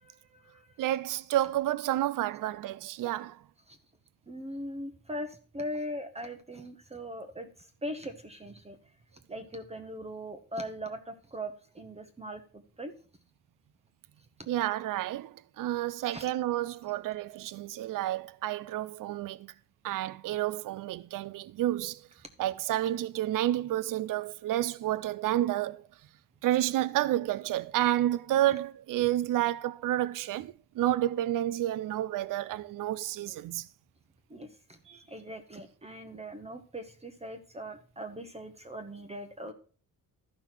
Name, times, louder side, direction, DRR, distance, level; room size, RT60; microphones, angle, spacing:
voice 1, 0.0-0.7 3.7-3.8 4.3-8.8 9.3-12.9 16.0-16.3 34.3-39.5, equal, 20° right, 0.9 m, -40 dB
voice 2, 0.8-3.4 14.5-19.5 19.8-22.0 22.4-25.8 26.4-33.7, right 13 dB, 70° right, 0.5 m, -30 dB
12.5 x 5.5 x 4.4 m
cardioid pair, 130°, 34 cm